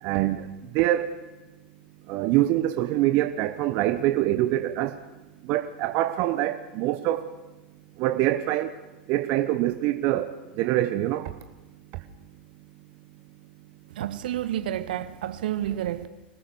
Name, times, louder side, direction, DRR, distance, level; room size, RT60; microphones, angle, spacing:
voice 1, 0.0-1.2 2.1-5.0 5.4-7.3 8.0-8.8 9.1-11.3, right 14 dB, 45° right, 1.0 m, -25 dB
voice 2, 14.0-16.1, right 12 dB, 65° right, 1.3 m, -30 dB
25.5 x 18.5 x 6.9 m
figure-of-eight pair, 90°, 5 cm